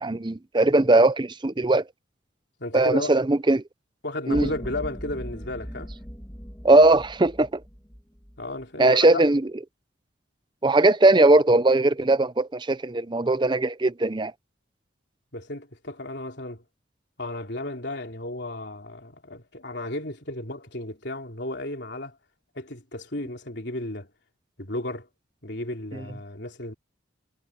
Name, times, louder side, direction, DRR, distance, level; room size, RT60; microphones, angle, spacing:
voice 1, 0.0-1.8 2.7-3.6 4.3-4.5 6.6-7.6 8.8-9.4 10.6-14.3, right 2 dB, 25° right, 0.6 m, -19 dB
voice 2, 2.6-3.1 4.0-5.9 8.4-9.2 15.3-16.6 17.2-22.2 22.5-24.1 24.6-25.1 25.4-26.7, left 1 dB, 55° left, 3.9 m, -34 dB
sound 1, 4.3-8.6, equal, 10° left, 2.1 m, -39 dB
head